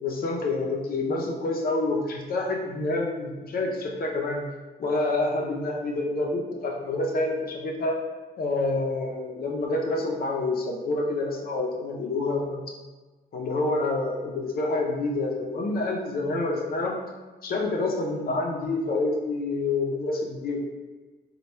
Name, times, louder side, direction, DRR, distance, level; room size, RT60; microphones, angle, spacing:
voice 1, 0.0-4.4 4.8-8.0 8.4-12.6 13.3-16.9 17.4-20.6, left 2 dB, 60° left, 0 dB, 0.6 m, -27 dB
3.2 x 2.3 x 4.2 m, 1.3 s
wide cardioid pair, 170°, 18 cm